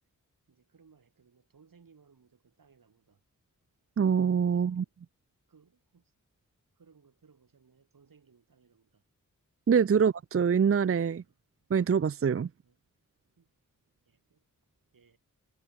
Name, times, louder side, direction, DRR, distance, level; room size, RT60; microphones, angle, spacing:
voice 1, 0.5-3.2 4.5-4.9 5.5-6.1 6.7-9.0 11.2-11.4 12.4-12.8 13.4-13.5 14.0-14.4 14.9-15.2, right 5 dB, 85° right, 7.4 m, -63 dB
voice 2, 4.0-4.8 9.7-11.2 11.7-12.5, right 7 dB, 45° right, 0.5 m, -25 dB
wide cardioid pair, 90°, 33 cm